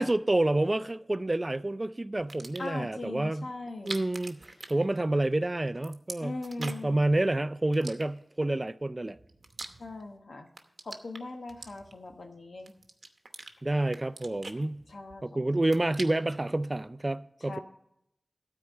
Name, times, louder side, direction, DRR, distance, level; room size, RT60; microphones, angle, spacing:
voice 1, 0.0-3.5 3.8-9.2 13.6-14.9 15.2-17.6, right 2 dB, 35° right, 0.4 m, -29 dB
sound 1, 2.2-2.8 3.7-5.3 5.6-7.0 7.7-8.5 9.1-10.2 10.5-12.2 12.7-13.5 13.9-15.2 15.5-16.4, right 3 dB, 70° right, 0.9 m, -44 dB
voice 2, 2.6-4.0 6.2-7.0 9.8-10.5 10.8-12.7 14.9-15.2 15.5-15.6 17.4-17.6, left 2 dB, 85° left, 1.1 m, -40 dB
12.5 x 4.5 x 7.6 m
wide cardioid pair, 55°, 0 cm